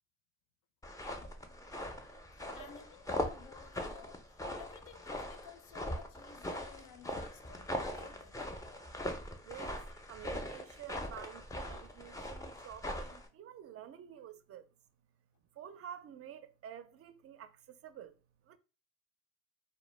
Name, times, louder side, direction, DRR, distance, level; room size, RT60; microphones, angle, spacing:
sound 1, 0.8-13.3, left 1 dB, 10° left, 0.4 m, -41 dB
voice 1, 1.2-1.6 2.3-8.7, left 8 dB, 75° left, 0.5 m, -56 dB
voice 2, 9.4-14.7 15.5-18.2 18.4-18.6, right 10 dB, 50° right, 0.4 m, -50 dB
2.1 x 2.1 x 3.1 m
cardioid pair, 90°, 30 cm